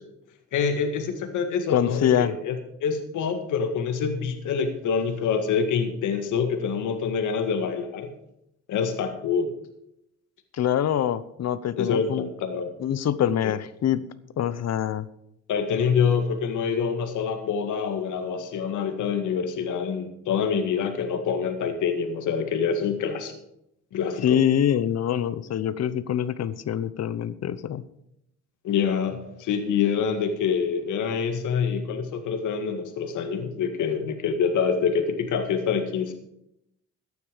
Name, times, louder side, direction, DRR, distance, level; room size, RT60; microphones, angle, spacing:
voice 1, 0.5-8.1 8.7-9.5 11.8-12.7 15.5-23.3 23.9-24.4 28.6-36.1, left 6 dB, 80° left, 6 dB, 1.9 m, -26 dB
voice 2, 1.7-2.3 10.5-12.3 12.8-14.0 14.4-15.1 24.2-27.8, left 10 dB, 60° left, 16 dB, 0.9 m, -24 dB
14.5 x 9.6 x 5.1 m, 0.79 s
cardioid pair, 90°, 30 cm